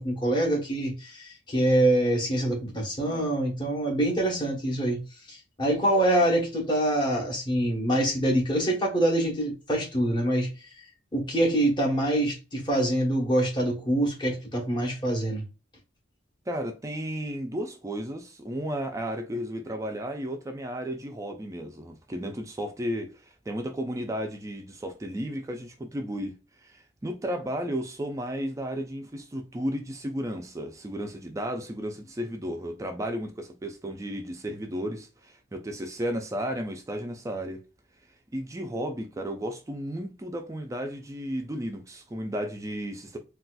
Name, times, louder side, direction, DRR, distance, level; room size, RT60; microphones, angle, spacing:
voice 1, 0.0-5.0 5.3-10.5 11.1-15.4, right 1 dB, 25° left, 0.9 m, -25 dB
voice 2, 16.5-26.4 26.6-37.6 38.3-43.2, equal, 15° right, 0.4 m, -33 dB
4.0 x 2.3 x 2.2 m
head